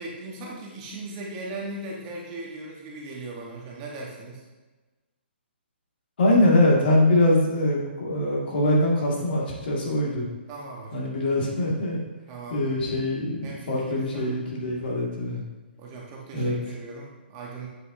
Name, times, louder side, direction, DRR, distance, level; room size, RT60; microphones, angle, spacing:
voice 1, 0.0-4.4 10.5-11.1 12.3-13.0 13.4-14.3 15.8-17.7, right 2 dB, 25° right, -2 dB, 1.2 m, -38 dB
voice 2, 6.2-10.3 10.9-12.0 12.5-15.4 16.3-16.6, left 1 dB, 60° left, -3 dB, 2.1 m, -23 dB
7.9 x 5.5 x 2.7 m, 1.2 s
hypercardioid pair, 160°, 6 cm